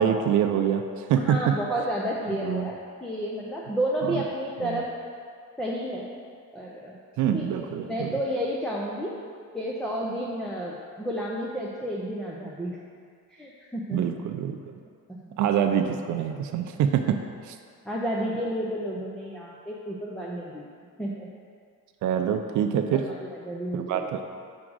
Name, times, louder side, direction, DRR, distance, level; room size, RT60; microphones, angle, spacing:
voice 1, 0.0-1.5 2.4-2.7 4.0-4.2 4.6-4.8 7.2-8.2 13.9-14.7 15.4-17.2 17.4-17.6 22.0-23.0 23.7-24.3, right 9 dB, 55° right, 6 dB, 0.5 m, -25 dB
voice 2, 1.2-4.9 5.6-6.1 6.5-7.0 7.3-9.1 9.5-12.8 13.3-14.2 15.1-15.4 17.1-17.2 17.8-20.7 21.0-21.3 22.9-24.1, equal, ahead, -5 dB, 0.3 m, -31 dB
6.1 x 3.7 x 6.1 m, 2.2 s
cardioid pair, 155°, 36 cm